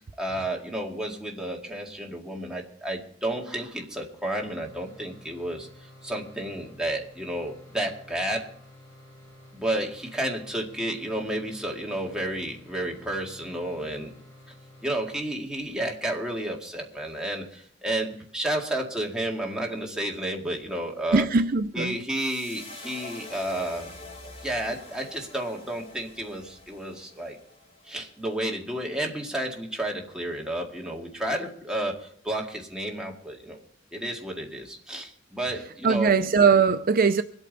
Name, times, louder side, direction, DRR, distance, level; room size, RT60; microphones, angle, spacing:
voice 1, 0.2-8.5 9.5-14.1 14.8-21.3 21.7-24.0 24.4-27.4 27.8-33.6 33.9-36.2, right 1 dB, 5° right, 2.0 m, -31 dB
sound 1, 4.4-15.7, left 1 dB, 15° left, 7.9 m, -51 dB
voice 2, 21.1-22.0 35.8-37.2, right 5 dB, 50° right, 0.5 m, -20 dB
sound 2, 22.1-28.4, left 3 dB, 30° left, 3.0 m, -45 dB
25.0 x 8.8 x 4.0 m
head